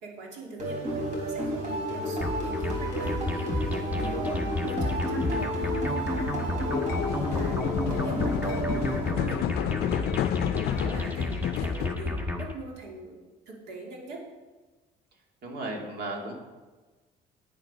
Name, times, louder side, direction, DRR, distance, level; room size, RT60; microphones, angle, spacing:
voice 1, 0.0-3.7 4.0-4.3 4.6-9.4 9.8-10.3 10.6-14.2, right 3 dB, 85° right, -1 dB, 2.6 m, -42 dB
sound 1, 0.6-9.5, equal, 45° right, 3.8 m, -31 dB
sound 2, 2.2-12.5, left 2 dB, 10° right, 1.5 m, -32 dB
voice 2, 3.9-4.5 15.4-16.3, right 1 dB, 70° right, 0 dB, 2.5 m, -36 dB
sound 3, 6.7-11.9, left 11 dB, 70° left, 0.4 m, -31 dB
9.3 x 8.6 x 5.5 m, 1.3 s
cardioid pair, 110°, 17 cm